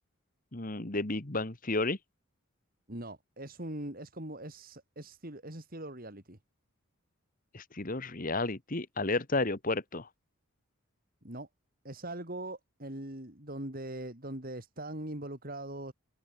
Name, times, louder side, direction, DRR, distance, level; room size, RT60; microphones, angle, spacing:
voice 1, 0.5-2.0 7.5-10.1, left 2 dB, 40° left, 1.6 m, -32 dB
voice 2, 2.9-6.4 11.2-11.5 11.8-15.9, right 1 dB, 40° right, 3.7 m, -41 dB
head